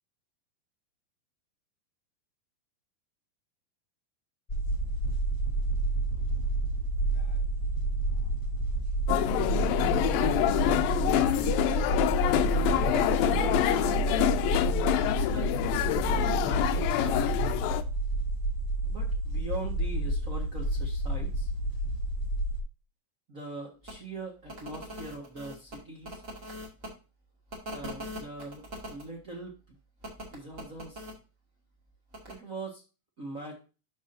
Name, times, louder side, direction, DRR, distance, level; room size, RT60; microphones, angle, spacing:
sound 1, 4.5-22.6, right 2 dB, 20° left, 1.7 m, -29 dB
sound 2, 9.1-17.8, left 14 dB, 85° left, 2.4 m, -27 dB
voice 1, 10.5-11.6 12.6-14.0 15.0-17.3 18.8-21.5 23.3-26.2 27.7-29.6 30.3-31.1 32.3-32.8 33.2-33.5, right 2 dB, 45° right, -2 dB, 1.1 m, -41 dB
sound 3, 23.8-23.9 24.4-26.9 27.5-29.0 30.0-31.1 32.1-32.3, equal, 25° right, 2.2 m, -41 dB
12.0 x 4.9 x 2.7 m, 0.32 s
omnidirectional pair, 4.1 m